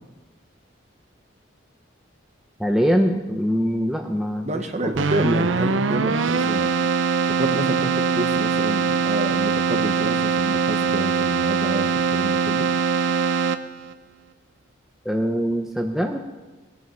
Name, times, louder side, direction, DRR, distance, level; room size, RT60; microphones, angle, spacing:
voice 1, 2.6-4.4 4.8-4.9 15.0-16.2, equal, ahead, 3 dB, 0.6 m, -22 dB
voice 2, 4.4-6.7 7.3-12.7, right 1 dB, 35° right, 7 dB, 1.1 m, -28 dB
Keyboard (musical), 4.9-13.9, right 5 dB, 70° right, 0.6 m, -22 dB
19.0 x 9.4 x 5.7 m, 1.2 s
head